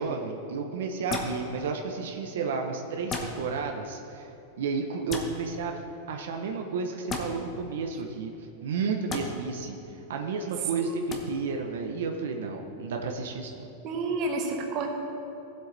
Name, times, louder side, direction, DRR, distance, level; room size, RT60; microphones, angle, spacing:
voice 1, 0.0-4.3 4.6-5.8 6.1-8.3 8.6-9.8 10.1-13.7, right 4 dB, 80° right, 3 dB, 0.9 m, -32 dB
sound 1, 1.1-1.4 3.1-3.3 5.1-5.3 7.1-7.2 9.1-9.2 11.1-11.2, left 4 dB, 20° left, 1.1 m, -32 dB
voice 2, 10.8-11.2 13.8-14.9, right 3 dB, 40° right, 2 dB, 1.3 m, -30 dB
15.5 x 7.8 x 3.4 m, 2.9 s
supercardioid pair, 155°, 0 cm